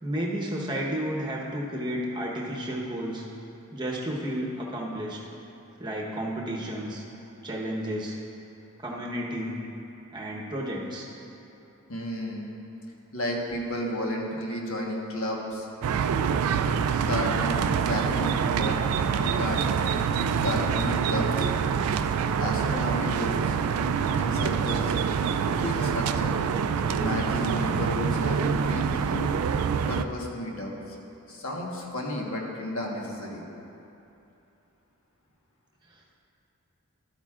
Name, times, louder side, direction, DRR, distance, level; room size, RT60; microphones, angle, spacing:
voice 1, 0.0-3.2 3.7-5.2 5.8-7.0 7.4-8.1 8.8-9.5 10.1-11.1, equal, 20° right, -3 dB, 1.0 m, -32 dB
voice 2, 11.9-12.5 13.1-15.7 17.0-18.8 19.2-19.6 20.0-20.1 20.4-21.5 22.4-23.6 24.0-24.9 25.4-26.3 26.9-29.3 29.9-31.0 31.3-33.4, left 1 dB, 70° left, -2 dB, 1.3 m, -32 dB
sound 1, 15.8-30.0, right 6 dB, 85° right, 0.3 m, -26 dB
12.5 x 9.0 x 2.4 m, 2.8 s
head